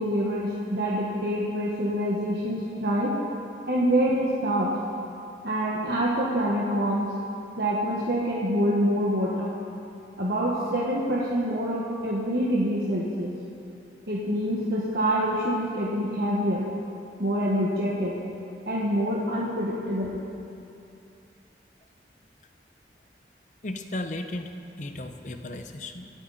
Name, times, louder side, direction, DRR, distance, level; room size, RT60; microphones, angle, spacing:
voice 1, 0.0-3.1 3.7-4.8 5.4-7.1 7.6-9.6 10.2-13.3 14.1-16.7 17.2-18.2 18.7-20.2, equal, 60° right, -5 dB, 1.5 m, -26 dB
voice 2, 23.6-26.1, left 1 dB, 45° left, 7 dB, 0.9 m, -35 dB
26.0 x 9.1 x 4.2 m, 2.6 s
head